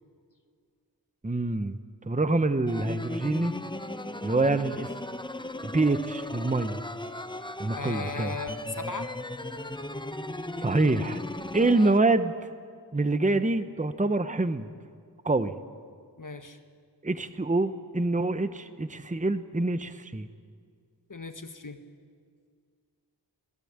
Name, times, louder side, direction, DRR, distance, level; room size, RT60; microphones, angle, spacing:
voice 1, 1.2-1.8 2.1-3.5 4.2-4.9 5.6-6.8 7.6-8.3 10.6-11.2 11.5-12.3 12.9-14.7 15.2-15.6 17.0-20.3, right 2 dB, 15° right, 11 dB, 1.0 m, -26 dB
sound 1, 2.7-12.0, left 1 dB, 10° left, 0.9 m, -37 dB
voice 2, 7.8-9.1 16.2-16.6 21.1-21.8, left 3 dB, 45° left, 7 dB, 1.6 m, -37 dB
26.0 x 17.5 x 8.9 m, 2.1 s
wide cardioid pair, 50°, 43 cm